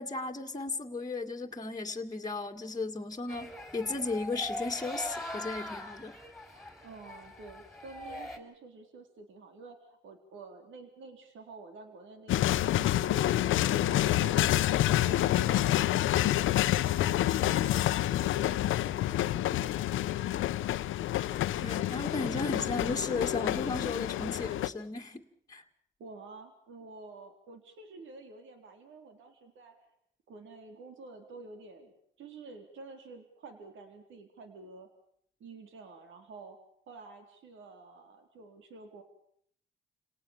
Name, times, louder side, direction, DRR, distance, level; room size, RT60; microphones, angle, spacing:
voice 1, 0.0-6.1 21.6-25.6, left 3 dB, 20° left, 1 dB, 2.1 m, -35 dB
sound 1, 3.3-8.4, left 1 dB, ahead, 4.3 m, -42 dB
voice 2, 6.8-13.2 13.5-16.3 16.8-17.9 18.2-20.5 26.0-29.9 30.3-31.9 32.2-34.9 35.4-36.6 36.9-39.0, right 3 dB, 75° right, 6 dB, 4.0 m, -49 dB
sound 2, 12.3-24.7, left 14 dB, 80° left, 0.9 m, -28 dB
29.5 x 18.5 x 7.4 m, 0.66 s
cardioid pair, 90°, 20 cm